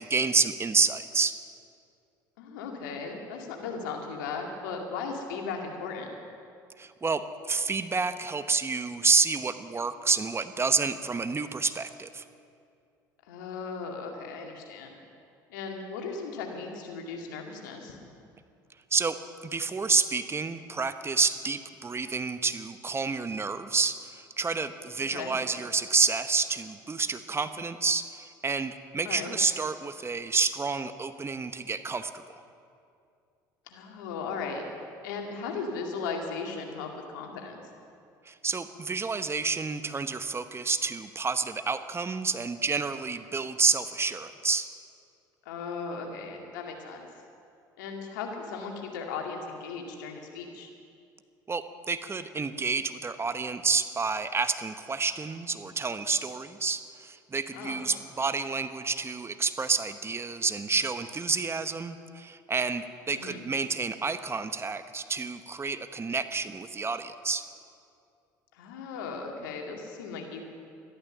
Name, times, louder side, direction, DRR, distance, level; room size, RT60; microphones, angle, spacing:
voice 1, 0.0-1.4 6.8-12.2 18.9-19.2 19.4-32.4 38.2-44.7 51.5-67.4, right 4 dB, 25° right, 11 dB, 0.9 m, -29 dB
voice 2, 2.4-6.1 13.3-15.0 15.5-18.0 25.0-25.4 29.0-29.3 33.7-34.6 35.0-37.6 45.5-47.1 47.8-50.7 57.5-57.9 63.1-63.4 68.5-70.4, left 5 dB, 80° left, 2 dB, 2.1 m, -37 dB
13.0 x 12.5 x 7.2 m, 2.4 s
hypercardioid pair, 70°, 10 cm